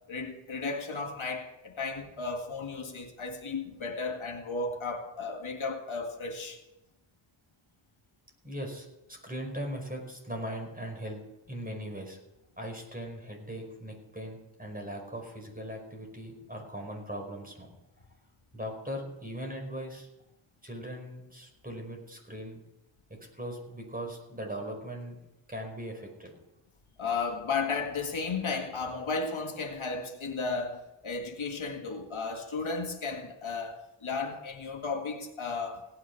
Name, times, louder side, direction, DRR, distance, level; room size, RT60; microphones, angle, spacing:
voice 1, 0.1-6.6 27.0-35.9, left 4 dB, 85° left, 2.1 m, -34 dB
voice 2, 8.4-11.2 11.5-12.2 12.6-17.7 18.5-20.1 20.6-22.6 23.3-25.2 25.5-26.3, equal, 20° right, 5.1 m, -39 dB
17.0 x 10.0 x 6.1 m
wide cardioid pair, 75°, 47 cm